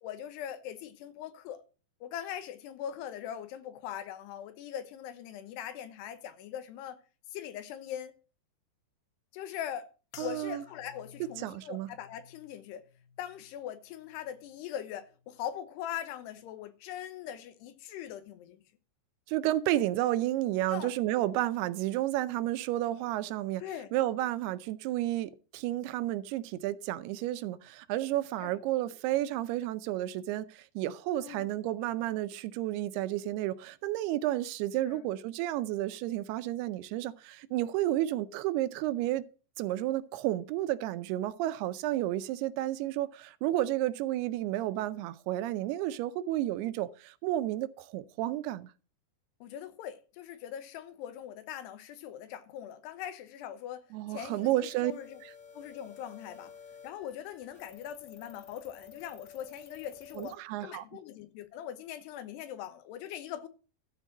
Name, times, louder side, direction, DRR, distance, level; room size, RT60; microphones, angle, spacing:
voice 1, 0.0-1.6 2.0-7.0 7.3-8.1 9.3-9.9 10.2-12.8 13.2-18.6 20.7-20.9 23.6-23.9 28.4-28.5 31.2-31.5 34.8-35.1 49.4-55.2 55.5-56.5 56.8-63.5, left 10 dB, 90° left, 3.1 m, -41 dB
sound 1, 10.1-14.7 15.0-15.6 16.2-16.5, left 8 dB, 70° left, 2.1 m, -56 dB
voice 2, 10.2-10.6 11.4-11.9 19.3-23.6 23.9-39.2 39.6-48.7 53.9-54.9 55.2-55.3 60.2-60.9, right 14 dB, 85° right, 2.6 m, -31 dB
sound 2, 54.2-60.3, left 7 dB, 35° left, 1.1 m, -52 dB
13.0 x 4.5 x 7.2 m
omnidirectional pair, 4.6 m